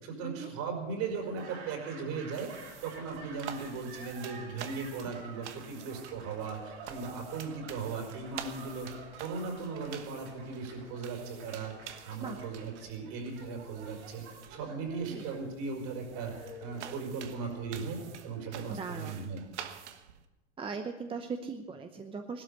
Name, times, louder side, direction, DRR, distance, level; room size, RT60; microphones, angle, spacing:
voice 1, 0.0-2.5 2.8-8.9 9.2-11.8 12.0-14.2 14.5-16.3 16.6-19.4, right 4 dB, 55° right, 3 dB, 5.2 m, -37 dB
Laughter / Applause, 1.1-19.2, right 3 dB, 70° right, 6.7 m, -50 dB
sound 1, 2.3-20.2, right 9 dB, 85° right, 1.3 m, -49 dB
voice 2, 14.9-15.2 18.7-19.3 20.6-22.4, right 5 dB, 15° right, 6 dB, 0.8 m, -39 dB
16.5 x 12.5 x 6.8 m, 1.1 s
supercardioid pair, 120°, 34 cm